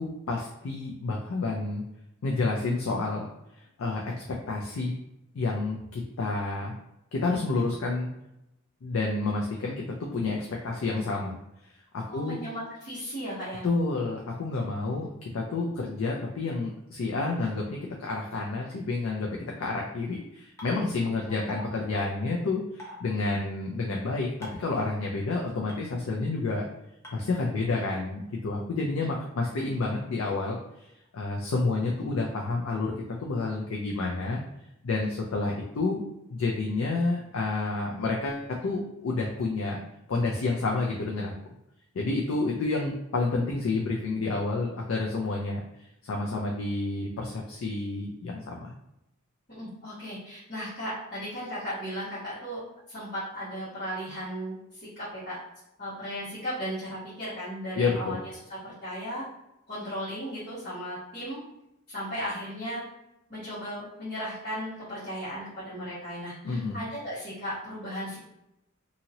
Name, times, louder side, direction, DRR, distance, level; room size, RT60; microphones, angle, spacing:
voice 1, 0.0-1.8 2.2-3.3 3.8-4.9 5.3-6.8 7.1-8.1 8.8-11.4 11.9-12.4 13.6-26.6 27.1-30.6 31.1-32.9 33.2-34.4 34.8-36.0 36.3-39.8 40.1-41.3 41.9-45.6 46.0-48.7 57.8-58.2 66.4-66.8, left 3 dB, 85° left, -1 dB, 0.4 m, -29 dB
voice 2, 12.1-13.6 21.3-21.4 49.5-52.6 52.9-55.4 55.8-58.2 58.6-59.2 59.7-61.4 61.9-62.8 63.3-68.2, equal, 50° left, -13 dB, 1.4 m, -36 dB
sound 1, 20.6-20.7 21.5-21.6 22.8-23.0 24.4-24.7 25.7-25.8 27.0-27.1, left 1 dB, 15° left, 0.7 m, -41 dB
2.8 x 2.7 x 2.7 m, 0.86 s
head